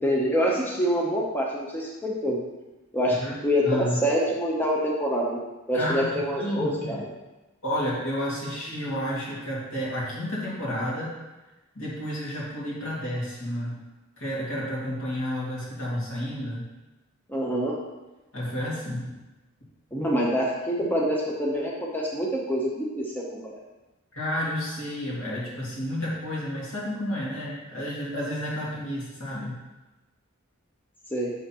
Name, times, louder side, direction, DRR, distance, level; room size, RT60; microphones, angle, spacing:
voice 1, 0.0-2.4 2.9-3.2 3.4-5.4 5.7-7.0 17.3-17.8 19.9-23.5 31.1-31.3, equal, 10° left, -3 dB, 0.7 m, -26 dB
voice 2, 3.6-4.0 5.7-7.0 7.6-11.1 11.7-13.8 14.2-16.7 18.3-19.1 24.1-29.6, equal, 80° left, -6 dB, 2.1 m, -31 dB
6.7 x 5.6 x 2.9 m, 1.1 s
head